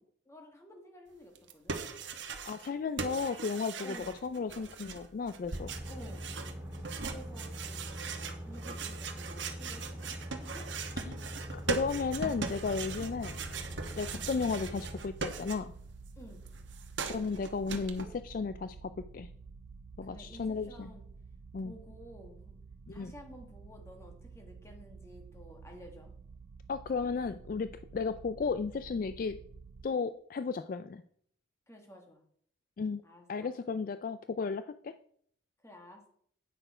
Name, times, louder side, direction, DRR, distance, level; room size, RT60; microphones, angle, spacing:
voice 1, 0.2-1.8 3.8-4.2 5.9-6.3 7.0-10.1 10.4-10.7 14.1-14.3 16.1-16.4 20.0-21.0 21.6-22.5 22.9-26.1 31.7-32.2 33.0-33.5 35.6-36.1, equal, 15° left, 2 dB, 1.7 m, -52 dB
sound 1, 1.3-2.7 3.0-15.9 16.2-18.0, right 5 dB, 70° right, 1.1 m, -40 dB
voice 2, 2.5-4.0 4.2-5.7 11.1-11.2 11.5-13.4 14.0-15.7 17.1-19.3 20.0-20.9 21.5-21.7 22.9-23.1 26.7-29.4 29.8-31.0 32.8-33.0 33.3-34.9, left 5 dB, 45° left, 12 dB, 0.3 m, -34 dB
sound 2, 5.5-15.0, equal, 15° right, 2.5 m, -43 dB
sound 3, 11.8-29.9, right 4 dB, 90° right, 0.5 m, -50 dB
8.9 x 6.5 x 4.9 m, 0.64 s
head